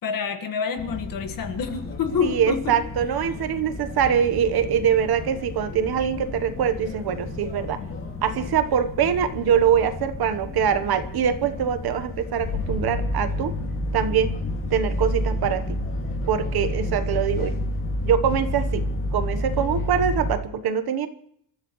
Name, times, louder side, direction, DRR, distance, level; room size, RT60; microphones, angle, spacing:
voice 1, 0.0-2.8, left 6 dB, 45° left, 7 dB, 1.8 m, -27 dB
sound 1, 0.8-20.4, left 1 dB, 30° left, 2.2 m, -30 dB
voice 2, 2.2-7.8 8.2-13.5 13.9-14.3 14.7-15.8 16.3-17.6 18.0-18.8 19.1-21.1, right 8 dB, 55° right, 10 dB, 1.2 m, -23 dB
27.5 x 14.0 x 3.1 m, 0.68 s
cardioid pair, 170°, 45 cm